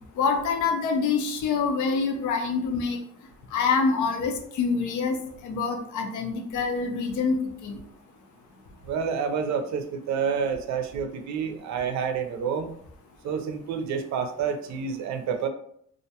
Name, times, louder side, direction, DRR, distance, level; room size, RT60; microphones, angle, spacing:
voice 1, 0.2-3.0 3.5-5.2 5.4-7.8, left 5 dB, 80° left, 3 dB, 0.6 m, -26 dB
voice 2, 8.8-12.7 13.2-15.5, right 6 dB, 70° right, 6 dB, 0.5 m, -28 dB
2.4 x 2.1 x 2.7 m, 0.67 s
cardioid pair, 90°, 30 cm